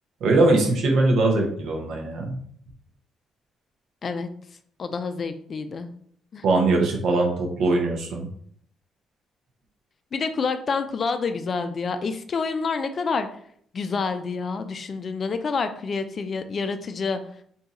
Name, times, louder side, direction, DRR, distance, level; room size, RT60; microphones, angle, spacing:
voice 1, 0.2-2.4 6.4-8.3, right 2 dB, 75° right, 1 dB, 0.8 m, -21 dB
voice 2, 4.8-5.9 6.3-6.4 10.1-13.3 13.7-17.2, left 4 dB, 45° left, 9 dB, 0.4 m, -28 dB
2.7 x 2.4 x 4.0 m, 0.62 s
cardioid pair, 90°, 0 cm